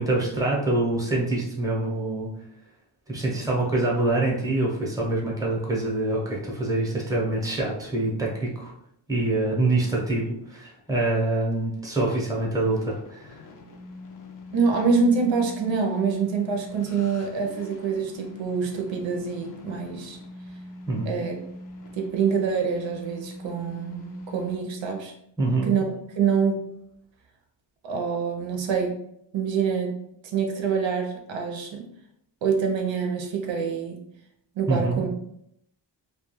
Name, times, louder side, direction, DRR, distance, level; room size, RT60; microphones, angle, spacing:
voice 1, 0.0-2.3 3.1-8.7 9.1-13.4 20.9-21.1 25.4-25.7 34.7-35.0, right 2 dB, 10° right, -3 dB, 0.7 m, -25 dB
sound 1, 10.8-24.6, left 2 dB, 45° left, 0.5 m, -43 dB
voice 2, 14.5-20.2 21.0-21.3 21.9-25.1 25.7-26.6 27.8-28.9 29.3-29.9 30.3-31.8 32.4-34.0 34.6-35.1, right 5 dB, 90° right, 2 dB, 0.6 m, -26 dB
2.3 x 2.3 x 3.0 m, 0.73 s
wide cardioid pair, 120°, 44 cm